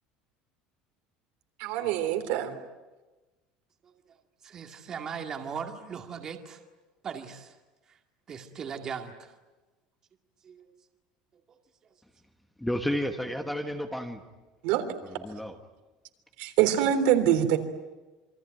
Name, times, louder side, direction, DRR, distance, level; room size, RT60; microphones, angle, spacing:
voice 1, 1.6-2.6 14.6-14.8 16.4-17.6, right 10 dB, 60° right, 7 dB, 3.4 m, -24 dB
voice 2, 4.4-6.6 7.0-7.6 7.9-8.0 8.3-9.3 10.4-10.7 11.5-11.6, right 6 dB, 25° right, 4 dB, 2.2 m, -38 dB
voice 3, 12.6-14.2 15.0-15.6, equal, 5° left, 5 dB, 1.4 m, -31 dB
28.0 x 23.5 x 9.2 m, 1.2 s
cardioid pair, 175°, 2 cm